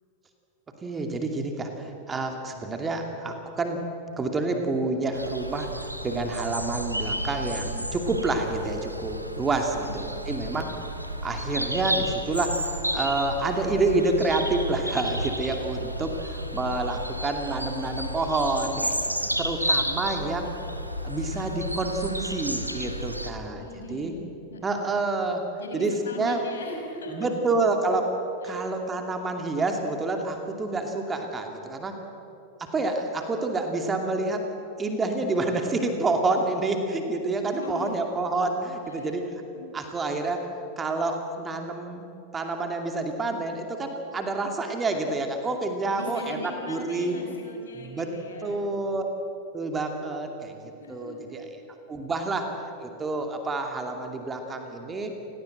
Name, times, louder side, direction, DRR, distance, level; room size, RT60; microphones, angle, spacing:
voice 1, 0.8-3.8 4.2-10.7 11.2-20.5 21.0-23.6 23.9-24.1 24.6-25.4 25.7-25.9 26.2-26.4 27.1-28.1 28.4-32.0 32.6-34.4 34.8-39.2 39.7-40.5 40.8-42.1 42.3-46.4 46.7-47.2 47.8-48.1 48.4-49.0 49.5-50.5 50.9-51.4 51.9-52.5 52.8-55.1, right 3 dB, 20° right, 4 dB, 2.5 m, -28 dB
sound 1, 5.1-23.3, equal, 90° right, 2.0 m, -32 dB
voice 2, 23.5-24.2 24.5-24.7 25.6-27.4 28.4-28.7 37.4-37.9 38.8-39.2 39.5-39.7 45.9-48.7 50.8-51.3, left 3 dB, 70° left, 2 dB, 5.5 m, -40 dB
29.5 x 18.5 x 8.0 m, 2.9 s
figure-of-eight pair, 90°, 0 cm